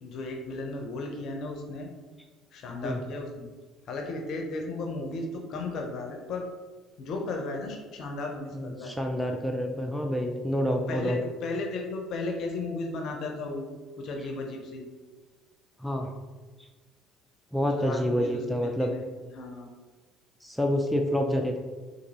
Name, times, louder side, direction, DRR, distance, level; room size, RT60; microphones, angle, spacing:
voice 1, 0.0-1.9 2.5-3.5 3.9-6.5 7.0-8.9 10.7-13.7 14.0-14.9 17.8-19.7, left 2 dB, 55° left, 2 dB, 0.5 m, -35 dB
voice 2, 8.5-11.2 15.8-16.1 17.5-18.9 20.4-21.6, equal, ahead, 2 dB, 0.4 m, -28 dB
3.8 x 2.6 x 2.8 m, 1.3 s
hypercardioid pair, 60°, 0 cm